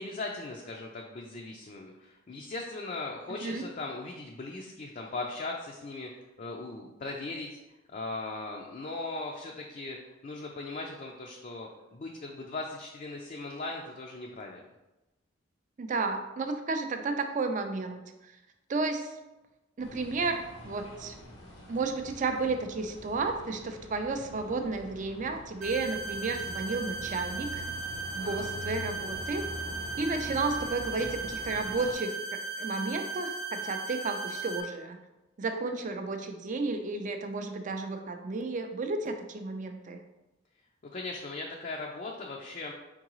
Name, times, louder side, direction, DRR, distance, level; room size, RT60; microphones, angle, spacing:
voice 1, 0.0-7.6 7.9-10.0 10.2-14.6 28.2-28.5 40.8-42.7, left 3 dB, 40° left, 0 dB, 0.4 m, -39 dB
voice 2, 15.8-18.0 18.7-19.2 19.8-21.1 21.7-27.6 28.1-29.4 30.0-32.1 32.6-35.0 35.4-40.0, right 3 dB, 40° right, 6 dB, 0.4 m, -32 dB
sound 1, 19.8-31.9, left 1 dB, 90° left, 0.9 m, -44 dB
sound 2, 25.6-34.6, right 3 dB, 85° right, 0.6 m, -37 dB
4.6 x 3.7 x 3.0 m, 1.0 s
head